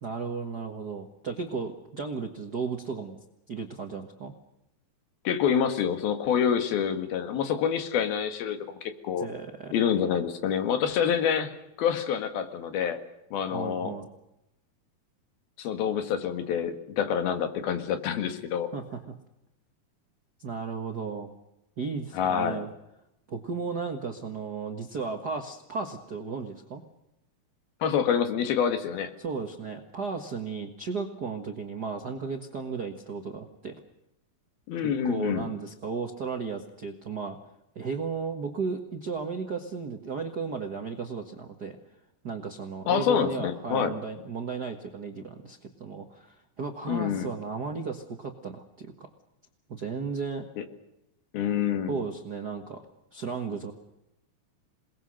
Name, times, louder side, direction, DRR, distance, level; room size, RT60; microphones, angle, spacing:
voice 1, 0.0-4.3 9.2-9.7 13.5-14.1 18.7-19.1 20.4-21.3 21.8-22.7 23.3-26.8 29.2-33.8 35.0-37.4 37.7-41.8 42.2-49.1 49.7-50.5 51.9-52.9 53.1-53.7, right 5 dB, 55° right, 4 dB, 1.1 m, -35 dB
voice 2, 5.3-9.3 9.7-13.0 13.3-13.9 15.6-18.7 22.1-22.6 27.8-29.1 34.7-35.5 42.9-43.9 46.9-47.3 50.6-50.7 51.3-52.0, left 8 dB, 80° left, 8 dB, 3.7 m, -27 dB
28.0 x 20.5 x 6.5 m, 0.87 s
omnidirectional pair, 4.3 m